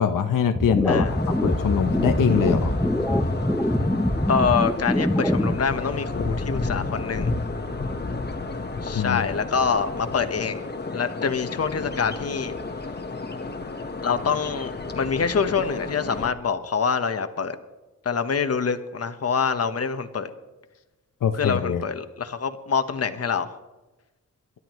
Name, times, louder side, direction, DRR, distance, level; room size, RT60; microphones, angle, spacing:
voice 1, 0.0-2.8 8.9-9.2 21.2-21.8, left 7 dB, 75° left, 7 dB, 0.9 m, -23 dB
sound 1, 0.5-5.5, left 1 dB, 5° left, 0.7 m, -24 dB
sound 2, 1.0-16.3, left 3 dB, 30° left, 1.4 m, -32 dB
voice 2, 4.3-7.3 8.8-10.6 10.9-12.6 14.0-17.6 18.0-20.3 21.3-23.5, left 6 dB, 45° left, 9 dB, 1.1 m, -25 dB
27.5 x 12.5 x 3.1 m, 1.1 s
wide cardioid pair, 130°, 33 cm